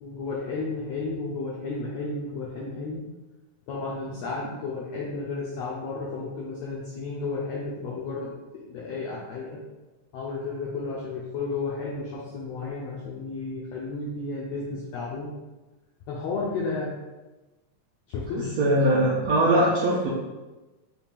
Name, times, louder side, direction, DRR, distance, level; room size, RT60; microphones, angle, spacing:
voice 1, 0.0-3.1 3.7-9.6 10.1-15.3 16.1-16.9 18.1-18.5, left 3 dB, 80° left, -4 dB, 1.5 m, -33 dB
voice 2, 18.6-20.1, right 1 dB, 80° right, -5 dB, 1.5 m, -21 dB
5.7 x 2.4 x 3.5 m, 1.1 s
omnidirectional pair, 3.7 m